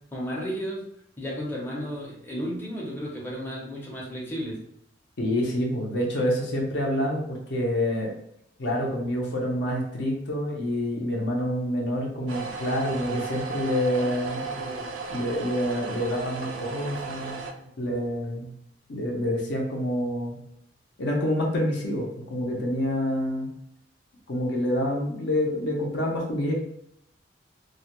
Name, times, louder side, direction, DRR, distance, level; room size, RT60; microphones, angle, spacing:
voice 1, 0.1-0.8 1.2-4.6 13.9-14.8 15.8-16.9 17.2-17.7, equal, 10° left, -5 dB, 0.5 m, -35 dB
voice 2, 5.2-8.2 8.6-14.5 15.1-17.4 17.8-18.5 18.9-20.4 21.0-23.5 24.3-26.5, left 1 dB, 65° left, -1 dB, 0.6 m, -27 dB
sound 1, 12.3-17.5, right 4 dB, 85° right, 0.3 m, -35 dB
2.2 x 2.1 x 2.9 m, 0.76 s
head